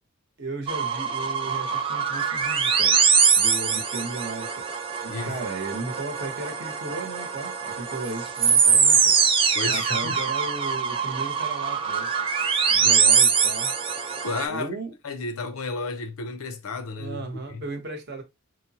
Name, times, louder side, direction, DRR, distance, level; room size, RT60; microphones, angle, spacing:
voice 1, 0.4-3.0 3.4-4.6 5.0-9.1 9.7-12.1 12.7-13.7 14.5-14.9 17.0-18.2, right 3 dB, 55° right, 0.8 m, -35 dB
sound 1, 0.7-14.5, right 6 dB, 25° right, 0.3 m, -23 dB
voice 2, 9.5-10.2 12.8-12.9 14.2-14.7 15.0-17.6, left 3 dB, 85° left, 0.5 m, -32 dB
3.0 x 2.0 x 2.7 m
head